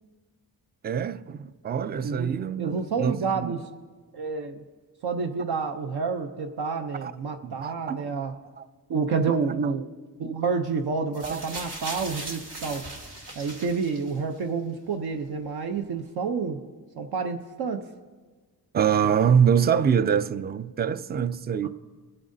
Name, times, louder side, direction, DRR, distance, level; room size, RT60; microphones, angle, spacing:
voice 1, 0.8-3.6 7.0-7.1 7.4-8.1 8.6-8.7 9.3-9.4 9.6-9.7 11.2-11.4 18.7-21.7, right 7 dB, 25° right, 0.3 m, -25 dB
voice 2, 2.6-3.6 4.1-4.6 5.0-8.3 8.9-9.9 10.2-12.9 13.4-16.6 17.0-17.8 21.6-21.7, right 5 dB, 70° right, 0.7 m, -29 dB
sound 1, 11.1-14.4 15.3-15.4, right 1 dB, 90° right, 1.8 m, -38 dB
25.0 x 8.7 x 2.7 m
cardioid pair, 90°, 39 cm